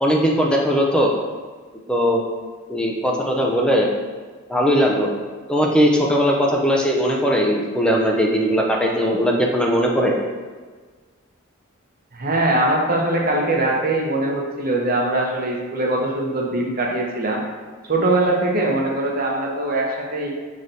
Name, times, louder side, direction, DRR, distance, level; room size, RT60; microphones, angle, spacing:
voice 1, 0.0-1.1 1.9-2.2 2.7-3.9 4.5-5.1 5.5-10.2, equal, 5° left, -1 dB, 0.4 m, -19 dB
voice 2, 12.1-17.4 17.9-20.3, right 2 dB, 45° right, -1 dB, 0.7 m, -21 dB
5.4 x 3.2 x 2.6 m, 1.5 s
head